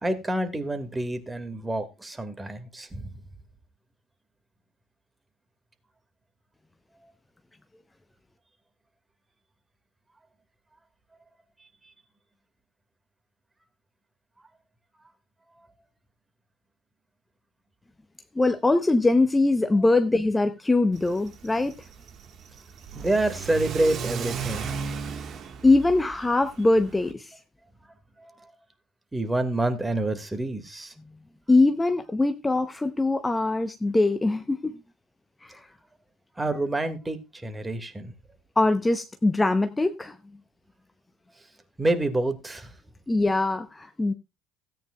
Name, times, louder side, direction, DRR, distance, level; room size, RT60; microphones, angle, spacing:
voice 1, 0.0-3.2 22.9-24.7 28.2-28.5 29.1-30.9 36.4-38.1 41.8-42.7, right 2 dB, 15° right, 2.0 m, -28 dB
voice 2, 18.4-21.7 25.6-27.3 31.5-34.7 35.4-35.6 38.6-40.2 43.1-44.1, left 2 dB, 15° left, 0.8 m, -22 dB
Car / Accelerating revving vroom, 20.9-27.1, right 6 dB, 45° right, 1.6 m, -36 dB
16.5 x 9.1 x 2.3 m
figure-of-eight pair, 60°, 0 cm